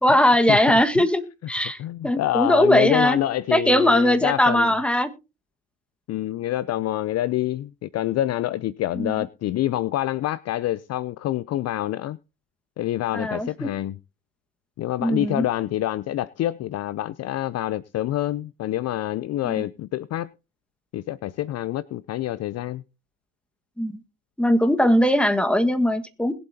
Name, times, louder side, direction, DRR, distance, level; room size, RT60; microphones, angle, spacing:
voice 1, 0.0-3.2 3.5-5.1 8.9-9.1 13.1-13.7 15.0-15.4 19.4-19.7 23.8-24.0 24.4-26.3, left 1 dB, 5° left, 1.5 m, -20 dB
voice 2, 1.8-4.7 6.1-12.2 12.8-14.0 14.8-20.3 20.9-22.8, left 14 dB, 45° left, 0.5 m, -27 dB
21.0 x 7.8 x 2.8 m
supercardioid pair, 90°, 38 cm